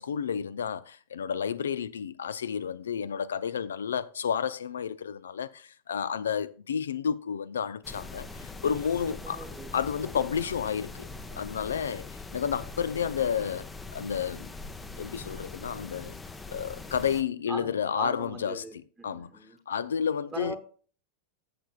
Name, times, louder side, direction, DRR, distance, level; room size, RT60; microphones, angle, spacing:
voice 1, 0.0-9.5 9.7-11.1 11.3-14.5 15.0-16.2 16.5-18.6 19.0-19.3 19.7-20.6, left 7 dB, 65° left, 0.4 m, -31 dB
sound 1, 7.8-17.2, left 3 dB, 15° left, 0.7 m, -42 dB
voice 2, 9.2-9.7 17.5-19.6 20.3-20.6, right 3 dB, 10° right, 1.1 m, -40 dB
14.5 x 6.9 x 2.3 m
figure-of-eight pair, 90°, 0 cm